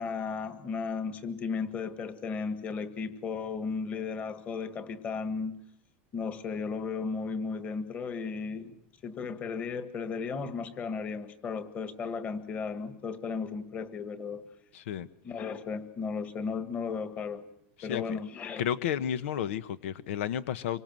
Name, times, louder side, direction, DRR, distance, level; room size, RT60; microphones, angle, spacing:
voice 1, 0.0-5.6 6.1-8.7 9.0-14.4 15.2-17.5 17.8-18.6 19.4-19.5, left 5 dB, 20° left, 11 dB, 1.8 m, -35 dB
voice 2, 14.7-15.1 17.8-18.0 18.6-20.8, left 10 dB, 80° left, 14 dB, 1.1 m, -32 dB
26.0 x 24.5 x 7.7 m, 0.73 s
supercardioid pair, 175°, 7 cm